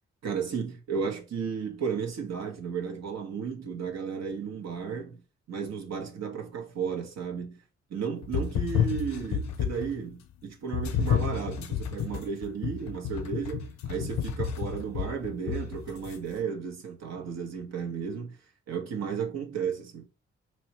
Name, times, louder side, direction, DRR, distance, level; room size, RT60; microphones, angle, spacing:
voice 1, 0.2-5.2 5.5-7.6 7.9-18.4 18.7-20.1, right 6 dB, 60° right, 0.9 m, -34 dB
sound 1, 8.2-10.0 10.7-16.2, left 8 dB, 65° left, 0.6 m, -31 dB
3.0 x 3.0 x 2.9 m
hypercardioid pair, 40°, 30 cm